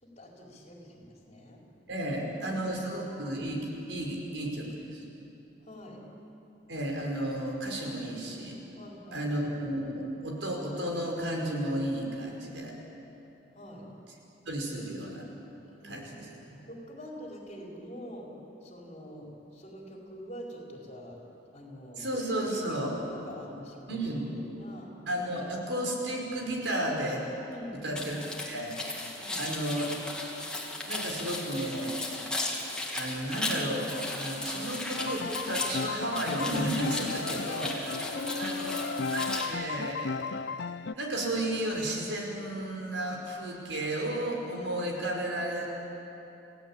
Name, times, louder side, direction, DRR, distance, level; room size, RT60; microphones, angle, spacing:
voice 1, 0.0-1.6 2.2-2.9 5.6-6.0 8.7-9.3 13.5-13.9 15.6-16.3 16.7-18.3 18.6-21.2 21.5-22.0 22.5-24.9 27.5-28.0 29.2-29.4 38.1-38.9, left 1 dB, 40° left, -1 dB, 4.6 m, -44 dB
voice 2, 1.9-5.0 6.7-8.6 9.1-12.7 14.5-15.2 15.8-16.7 22.0-22.9 23.9-24.3 25.1-27.3 27.8-28.8 29.3-30.0 30.9-32.2 32.9-40.6 40.9-45.7, right 1 dB, 90° right, 0 dB, 5.2 m, -33 dB
sound 1, 28.0-39.5, left 2 dB, 5° left, 3.0 m, -36 dB
sound 2, 35.0-40.9, left 5 dB, 65° left, 0.5 m, -35 dB
29.0 x 17.0 x 8.8 m, 2.9 s
head